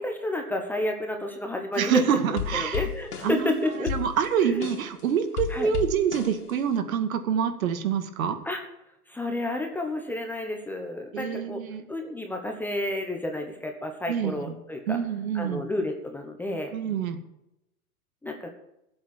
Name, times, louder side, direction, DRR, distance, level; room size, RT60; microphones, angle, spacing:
voice 1, 0.0-2.0 2.5-3.9 4.4-4.7 5.5-5.7 8.4-8.6 9.1-11.6 11.9-15.0 15.3-16.7 18.2-18.5, left 1 dB, 5° left, 3 dB, 1.1 m, -30 dB
sound 1, 1.7-2.0 2.4-5.0 5.4-6.8, left 8 dB, 85° left, 2.5 m, -34 dB
voice 2, 1.8-2.8 3.2-8.4 11.1-11.8 14.1-14.4 14.9-15.6 16.7-17.2, right 8 dB, 65° right, 8 dB, 2.2 m, -26 dB
14.0 x 7.9 x 7.3 m, 0.85 s
hypercardioid pair, 145°, 45 cm